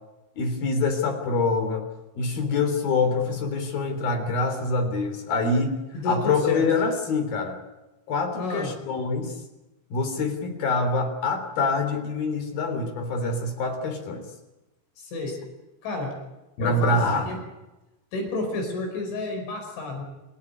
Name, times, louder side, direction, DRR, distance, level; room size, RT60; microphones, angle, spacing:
voice 1, 0.4-1.9 2.2-7.6 8.1-9.3 9.9-14.3 16.6-17.4, left 3 dB, 50° left, 6 dB, 4.9 m, -25 dB
voice 2, 5.9-6.7 8.4-8.7 15.0-15.3 15.8-16.1 16.6-17.4 18.1-20.0, left 2 dB, 65° left, 3 dB, 7.4 m, -30 dB
28.5 x 16.5 x 9.7 m, 1.0 s
omnidirectional pair, 6.0 m